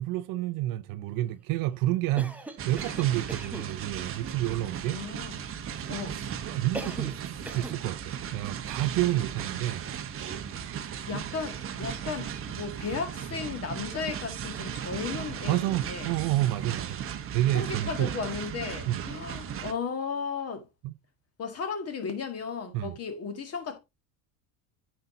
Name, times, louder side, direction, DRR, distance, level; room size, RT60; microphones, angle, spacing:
voice 1, 0.0-5.0 6.4-9.9 15.5-18.1 18.9-19.0 20.8-20.9 22.7-22.9, right 15 dB, 55° right, 0.6 m, -29 dB
Cough, 2.2-3.7 6.7-7.2 7.5-7.8, right 1 dB, 5° right, 0.7 m, -39 dB
sound 1, 2.6-19.7, right 8 dB, 30° right, 0.9 m, -36 dB
voice 2, 4.9-5.5 5.9-6.2 6.8-7.0 11.1-16.1 17.5-20.7 21.4-23.8, left 5 dB, 35° left, 1.7 m, -35 dB
9.1 x 5.8 x 2.7 m
supercardioid pair, 115°, 42 cm